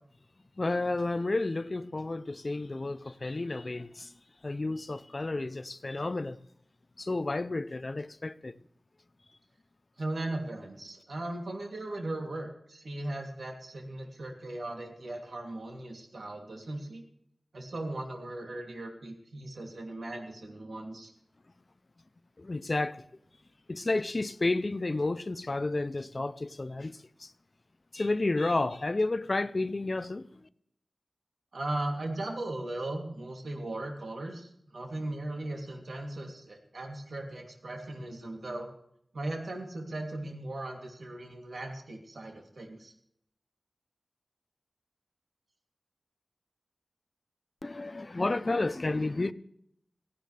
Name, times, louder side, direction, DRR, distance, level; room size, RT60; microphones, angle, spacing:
voice 1, 0.6-4.1 4.4-6.4 7.0-8.6 22.4-23.0 23.7-27.3 27.9-30.5 47.6-49.3, left 2 dB, 40° left, 0.6 m, -31 dB
voice 2, 10.0-17.0 17.5-21.1 31.5-38.7 39.1-42.9, right 2 dB, 80° right, 2.9 m, -38 dB
17.0 x 17.0 x 3.4 m
wide cardioid pair, 90°, 0 cm